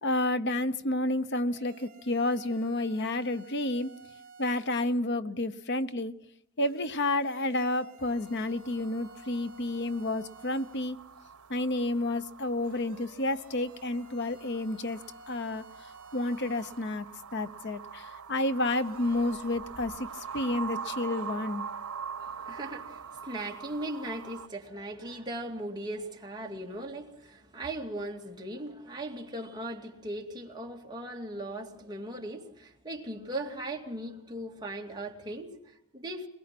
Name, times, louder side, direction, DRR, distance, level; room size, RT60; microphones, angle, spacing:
voice 1, 0.0-3.9 4.4-6.1 6.6-11.0 11.5-15.6 16.1-17.1 17.3-21.7, left 2 dB, 55° left, 1.0 m, -30 dB
sound 1, 1.5-4.9 6.6-10.9 12.6-16.9 18.6-19.5, right 2 dB, 40° right, 2.7 m, -53 dB
sound 2, 8.0-24.5, right 6 dB, 85° right, 1.0 m, -44 dB
sound 3, 18.8-20.6 21.5-21.6 22.1-22.2, equal, 30° left, 6.6 m, -57 dB
voice 2, 22.2-36.3, right 1 dB, 20° right, 2.5 m, -38 dB
22.0 x 21.5 x 6.0 m
head